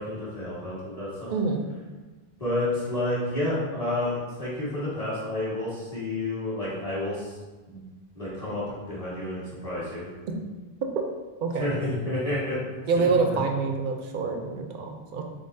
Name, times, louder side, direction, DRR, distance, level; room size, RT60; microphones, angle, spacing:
voice 1, 0.0-1.3 2.4-7.4 7.7-7.8 8.1-10.1 11.5-12.6 13.3-13.4, left 1 dB, 35° left, -9 dB, 1.6 m, -30 dB
voice 2, 1.3-1.6 11.4-11.7 12.9-15.2, right 4 dB, 60° right, 3 dB, 0.6 m, -26 dB
3.9 x 3.7 x 2.6 m, 1.2 s
omnidirectional pair, 1.0 m